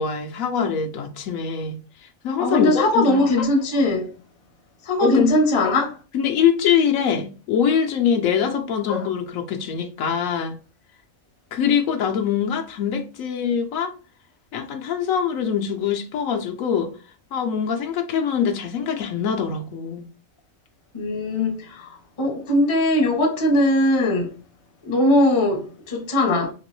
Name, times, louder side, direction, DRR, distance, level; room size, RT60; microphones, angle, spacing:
voice 1, 0.0-3.2 5.0-5.3 6.1-10.6 11.5-13.9 14.5-16.9 17.3-20.1, left 7 dB, 80° left, 1.1 m, -23 dB
voice 2, 2.4-4.1 4.9-6.0 8.9-9.0 20.9-21.9 22.2-24.3 24.9-26.5, left 1 dB, 30° left, 0.6 m, -20 dB
3.0 x 3.0 x 3.0 m
omnidirectional pair, 1.4 m